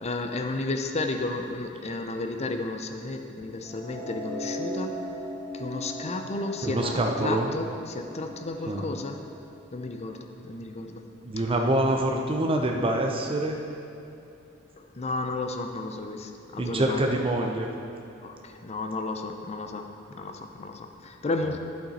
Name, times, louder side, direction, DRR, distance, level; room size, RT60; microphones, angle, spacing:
voice 1, 0.0-4.9 5.5-9.2 9.7-11.0 14.8-17.0 18.2-21.6, left 2 dB, 30° left, 5 dB, 0.5 m, -33 dB
sound 1, 3.6-9.9, equal, 5° left, 1.4 m, -38 dB
voice 2, 6.6-7.5 8.7-8.9 11.2-13.6 16.6-17.7, right 1 dB, 25° right, 1 dB, 0.5 m, -25 dB
10.5 x 5.9 x 4.1 m, 2.8 s
head